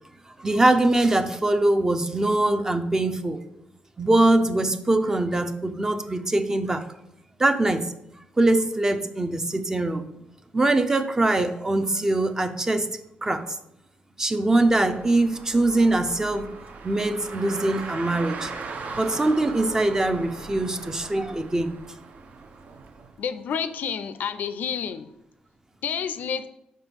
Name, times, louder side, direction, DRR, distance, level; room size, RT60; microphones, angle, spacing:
voice 1, 0.4-3.4 4.0-6.8 7.4-7.9 8.4-10.1 10.5-12.9 13.2-13.4 14.2-16.5 16.8-18.5 19.0-21.7, right 2 dB, 20° right, 9 dB, 0.5 m, -22 dB
Car, 14.6-23.1, right 4 dB, 60° right, 0.6 m, -39 dB
voice 2, 23.2-25.1 25.8-26.5, left 7 dB, 75° left, 12 dB, 0.4 m, -29 dB
5.1 x 4.4 x 5.2 m, 0.82 s
cardioid pair, 120°, 3 cm